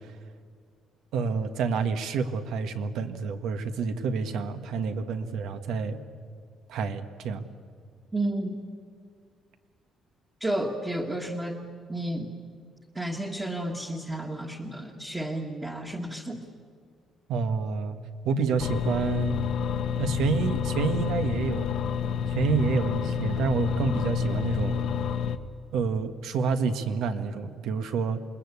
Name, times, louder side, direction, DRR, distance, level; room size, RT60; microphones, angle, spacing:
voice 1, 1.1-6.0 6.7-7.4 17.3-18.0 18.2-19.4 20.0-21.8 22.3-24.8 25.7-28.2, right 5 dB, 75° right, 8 dB, 1.5 m, -28 dB
voice 2, 8.1-8.6 10.4-11.6 11.9-12.3 12.9-16.4, right 1 dB, 10° right, 0 dB, 1.6 m, -31 dB
sound 1, 18.6-25.4, left 7 dB, 60° left, 1.1 m, -29 dB
28.0 x 21.0 x 8.5 m, 2.1 s
cardioid pair, 150°, 0 cm